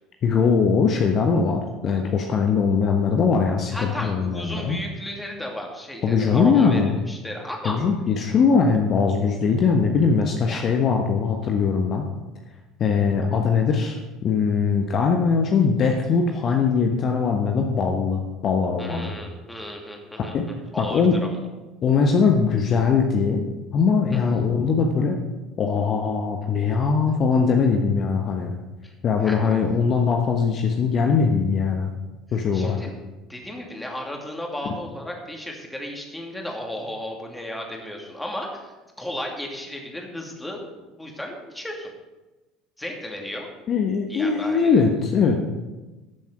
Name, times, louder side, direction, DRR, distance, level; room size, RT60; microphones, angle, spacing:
voice 1, 0.2-4.8 6.0-6.9 7.6-12.1 12.8-19.1 20.3-20.5 20.8-21.2 21.8-25.2 25.6-28.5 29.0-31.9 32.3-32.8 34.6-34.8 43.7-45.4, left 5 dB, 40° left, 2 dB, 1.1 m, -21 dB
voice 2, 3.7-6.8 7.1-7.8 10.5-10.7 18.8-21.5 24.3-24.4 28.8-28.9 29.2-29.5 32.3-32.9 33.3-41.9 42.8-43.5 44.1-44.8, left 1 dB, 10° left, 0 dB, 2.5 m, -34 dB
13.5 x 7.3 x 4.9 m, 1.1 s
figure-of-eight pair, 65°, 0 cm